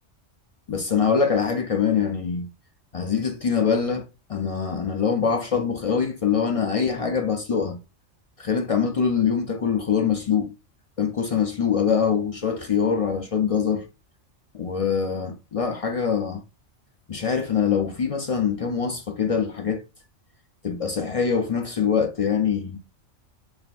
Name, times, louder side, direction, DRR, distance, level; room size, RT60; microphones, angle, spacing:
voice 1, 0.7-2.5 2.9-7.8 8.4-10.5 11.0-13.9 14.5-16.4 17.1-19.8 20.6-22.8, left 6 dB, 60° left, 0.3 m, -24 dB
4.5 x 3.4 x 2.4 m
omnidirectional pair, 1.3 m